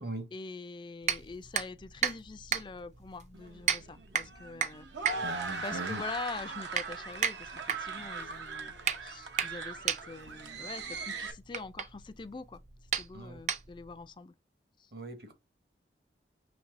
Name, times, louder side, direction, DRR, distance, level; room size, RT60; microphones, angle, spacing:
voice 1, 0.3-4.9 5.6-12.6 13.0-14.3 14.8-14.9, left 4 dB, 25° left, 0.3 m, -44 dB
sound 1, 1.0-14.0, right 8 dB, 40° right, 0.4 m, -35 dB
sound 2, 3.3-11.3, right 4 dB, 90° right, 0.9 m, -40 dB
voice 2, 5.1-6.0 13.1-13.4 14.9-15.3, right 2 dB, 60° right, 1.1 m, -40 dB
5.3 x 3.2 x 2.5 m
head